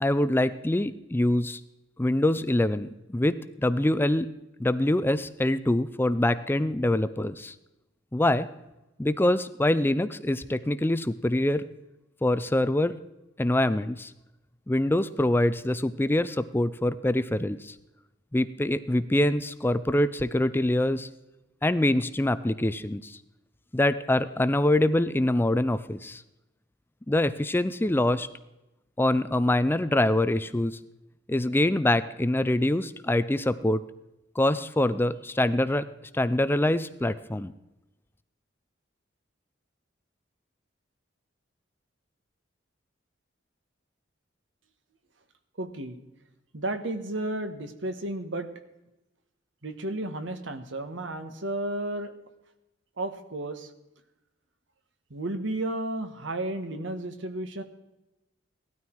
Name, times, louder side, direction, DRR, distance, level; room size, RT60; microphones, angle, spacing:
voice 1, 0.0-1.6 2.0-4.3 4.6-7.5 8.1-8.5 9.0-11.6 12.2-13.0 13.4-14.1 14.7-17.7 18.3-21.1 21.6-23.2 23.7-26.2 27.1-28.3 29.0-30.8 31.3-33.8 34.4-35.9 36.1-37.5, left 1 dB, 10° left, 13 dB, 0.4 m, -25 dB
voice 2, 45.6-46.0 46.5-48.5 49.6-52.1 53.0-53.7 55.1-57.6, right 1 dB, 70° right, 8 dB, 1.5 m, -33 dB
17.0 x 13.0 x 4.6 m, 0.95 s
head